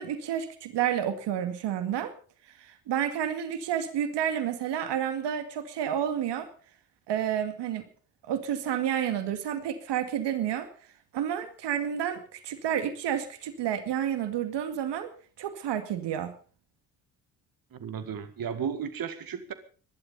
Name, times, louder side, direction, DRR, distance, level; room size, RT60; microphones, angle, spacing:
voice 1, 0.0-2.1 2.6-6.5 7.1-7.8 8.2-10.7 11.1-15.1 15.4-16.3, right 9 dB, 65° right, 10 dB, 2.2 m, -30 dB
voice 2, 17.7-19.5, right 7 dB, 50° right, 10 dB, 2.1 m, -34 dB
20.5 x 12.0 x 5.5 m, 0.41 s
hypercardioid pair, 55°, 45 cm